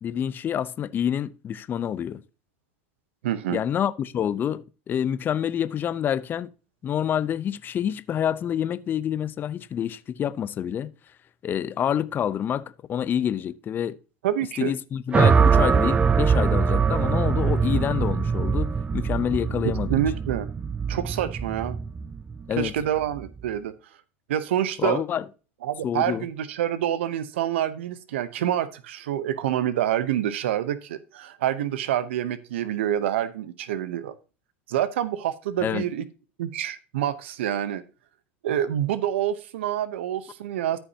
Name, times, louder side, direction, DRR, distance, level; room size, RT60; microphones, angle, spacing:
voice 1, 0.0-2.2 3.5-6.5 6.8-10.9 11.4-14.0 14.6-20.0 22.5-22.7 24.8-25.2 25.8-26.2 35.6-35.8, left 9 dB, 30° left, 0.6 m, -27 dB
voice 2, 3.2-3.6 14.2-14.7 19.9-20.5 20.9-21.8 22.5-23.7 24.3-25.0 25.6-34.1 34.7-36.0 36.4-37.8 38.4-40.8, right 11 dB, 85° right, 0.8 m, -27 dB
sound 1, 15.1-23.4, right 6 dB, 20° right, 0.4 m, -23 dB
14.0 x 5.7 x 2.8 m
supercardioid pair, 110°, 6 cm